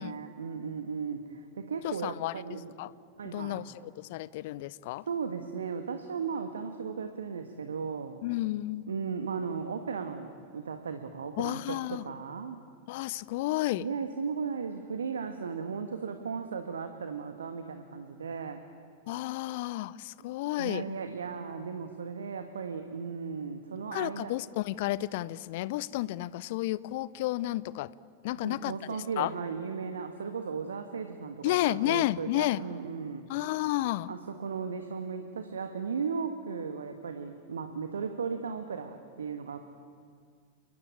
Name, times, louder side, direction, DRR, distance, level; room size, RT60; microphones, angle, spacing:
voice 1, 0.0-2.7 3.2-3.6 5.1-8.2 8.9-12.6 13.8-18.6 20.6-24.3 28.4-33.2 34.1-39.6, right 5 dB, 70° right, 7 dB, 1.5 m, -36 dB
voice 2, 1.8-2.9 3.3-5.0 8.2-9.0 11.4-12.0 12.9-13.9 19.1-20.8 23.9-27.9 28.2-29.3 31.4-32.6 33.3-34.1, left 16 dB, 50° left, 20 dB, 0.7 m, -32 dB
29.0 x 22.5 x 8.7 m, 2.2 s
figure-of-eight pair, 90°, 0 cm